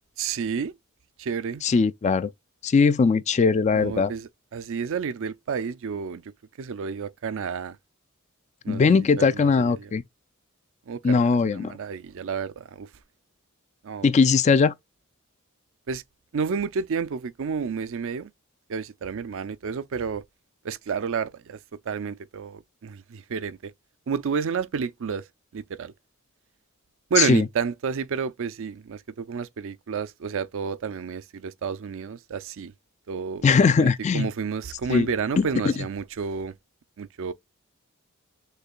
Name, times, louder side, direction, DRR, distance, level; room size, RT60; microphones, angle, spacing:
voice 1, 0.2-0.7 1.2-1.6 3.7-6.2 6.6-7.8 8.6-9.9 10.9-12.9 13.8-14.1 15.9-16.0 16.3-18.3 18.7-20.2 20.6-21.6 21.9-23.7 24.1-25.3 25.5-25.9 27.1-32.7 33.1-36.6 37.0-37.3, right 6 dB, 65° right, 0.4 m, -30 dB
voice 2, 1.6-2.3 2.6-4.1 8.7-10.0 11.0-11.7 14.0-14.7 27.2-27.4 33.4-34.3 34.9-35.1 35.4-35.7, left 5 dB, 30° left, 0.3 m, -20 dB
6.6 x 2.3 x 2.4 m
head